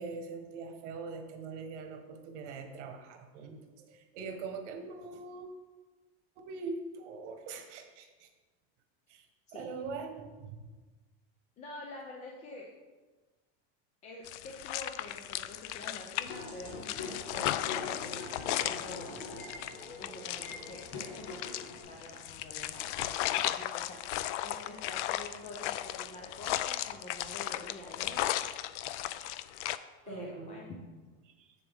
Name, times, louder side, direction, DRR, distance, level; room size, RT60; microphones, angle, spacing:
voice 1, 0.0-5.5 6.4-8.3 9.1-9.3 9.5-10.6 30.0-30.6 31.2-31.5, right 4 dB, 80° right, 5 dB, 1.3 m, -42 dB
voice 2, 9.5-9.8 11.6-12.7 14.0-19.2 20.0-28.2 30.1-30.8, left 2 dB, 20° left, -2 dB, 0.6 m, -47 dB
sound 1, 14.3-29.8, left 13 dB, 80° left, 0.5 m, -36 dB
sound 2, 16.3-21.8, left 3 dB, 60° left, 1.8 m, -44 dB
sound 3, 16.5-22.7, right 1 dB, 15° right, 2.0 m, -60 dB
7.8 x 7.0 x 3.5 m, 1.3 s
supercardioid pair, 175°, 35 cm